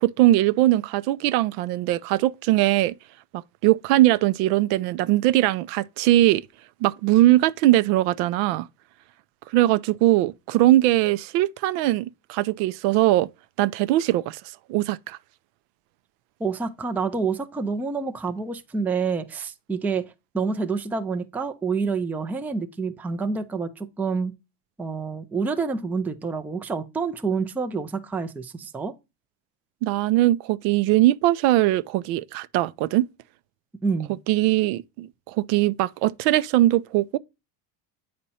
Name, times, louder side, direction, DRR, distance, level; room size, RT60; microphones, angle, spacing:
voice 1, 0.0-2.9 3.6-6.4 6.8-8.7 9.5-13.3 13.6-14.4 14.7-15.2 29.8-33.1 34.3-37.2, right 15 dB, 65° right, 0.6 m, -20 dB
voice 2, 16.4-24.3 24.8-28.9 33.8-34.1, right 5 dB, 5° right, 0.4 m, -28 dB
8.6 x 4.3 x 4.2 m
supercardioid pair, 100°, 50 cm